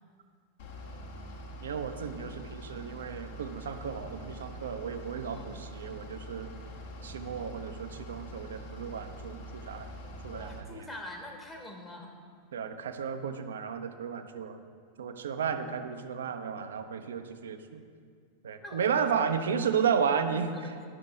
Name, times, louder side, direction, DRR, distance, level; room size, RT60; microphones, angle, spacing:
Bus / Idling, 0.6-10.6, equal, 55° left, 1.2 m, -44 dB
voice 1, 1.6-6.5 7.0-9.9 10.2-10.6 12.5-14.6 15.0-17.8 18.4-20.8, right 6 dB, 65° right, 8 dB, 0.5 m, -33 dB
voice 2, 5.3-5.6 10.3-12.1 18.6-18.8 20.5-20.9, left 1 dB, 20° left, 1 dB, 1.1 m, -44 dB
11.0 x 5.9 x 4.4 m, 2.1 s
figure-of-eight pair, 90°, 0 cm